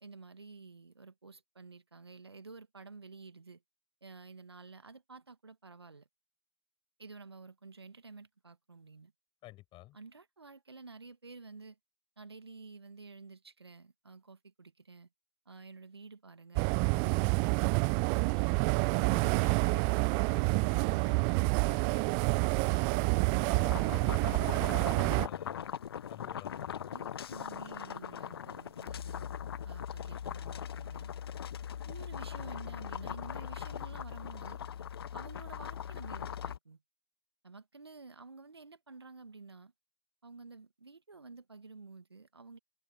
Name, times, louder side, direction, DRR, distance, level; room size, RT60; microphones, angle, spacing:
voice 1, 0.0-3.6 4.0-6.1 7.0-9.1 9.9-11.8 12.2-15.1 15.5-19.5 26.9-29.3 29.6-31.1 31.9-34.6 35.1-36.8 37.4-39.7 40.2-42.6, right 4 dB, 85° right, 1.9 m, -51 dB
voice 2, 9.4-10.0 19.0-25.7 26.1-27.0, left 17 dB, 40° left, 6.6 m, -52 dB
sound 1, 16.6-25.3, right 40 dB or more, 40° right, 0.4 m, -28 dB
sound 2, 23.5-36.6, left 9 dB, 70° left, 1.5 m, -40 dB
figure-of-eight pair, 90°, 13 cm